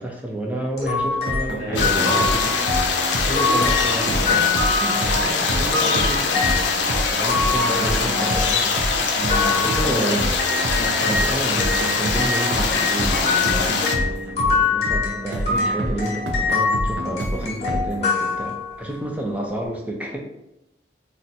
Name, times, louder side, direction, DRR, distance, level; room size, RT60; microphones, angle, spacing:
voice 1, 0.0-2.5 2.8-6.6 7.1-8.8 9.6-10.3 11.0-11.7 12.0-13.8 14.1-20.2, right 1 dB, 10° right, 0 dB, 0.4 m, -30 dB
sound 1, 0.8-11.3 11.6-19.0, left 4 dB, 35° left, 0.9 m, -25 dB
sound 2, 1.3-18.1, right 1 dB, 70° right, 0.4 m, -28 dB
voice 2, 1.5-2.3 9.2-10.1 10.7-11.2, right 1 dB, 50° right, -4 dB, 1.1 m, -29 dB
sound 3, 1.8-14.0, left 4 dB, 90° left, 0.5 m, -23 dB
2.5 x 2.2 x 4.0 m, 0.87 s
head